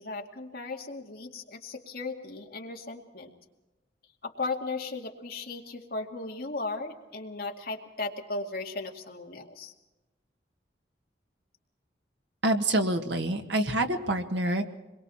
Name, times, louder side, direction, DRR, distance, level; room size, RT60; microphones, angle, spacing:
voice 1, 0.0-3.3 4.2-9.7, left 3 dB, 55° left, 1 dB, 2.2 m, -36 dB
voice 2, 12.4-14.6, right 1 dB, 75° right, 5 dB, 1.8 m, -26 dB
27.0 x 22.0 x 4.3 m, 1.0 s
head